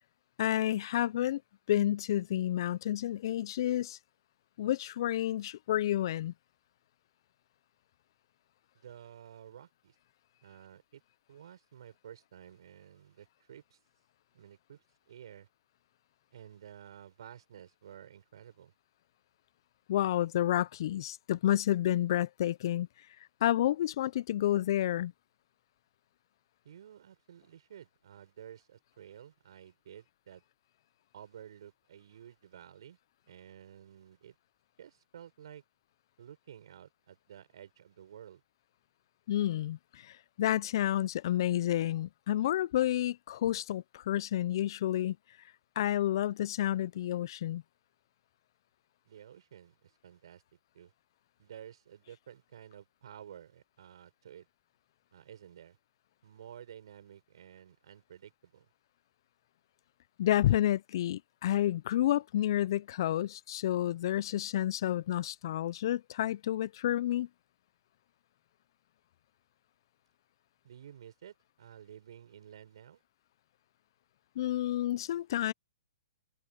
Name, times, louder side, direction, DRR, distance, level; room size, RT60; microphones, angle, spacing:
voice 1, 0.4-1.4 1.7-4.0 4.6-6.3 19.9-22.9 23.4-25.1 39.3-45.2 45.8-47.6 60.2-67.3 74.4-75.5, left 12 dB, 55° left, 0.8 m, -30 dB
voice 2, 8.7-10.0 10.4-11.0 11.3-13.8 14.3-15.5 16.3-18.7 26.6-30.4 31.1-33.0 33.3-34.4 34.8-35.6 36.2-38.4 49.0-50.4 50.7-50.9 51.4-54.5 55.1-55.8 56.2-58.7 70.6-73.0, right 9 dB, 65° right, 6.8 m, -52 dB
open air
hypercardioid pair, 125°, 3 cm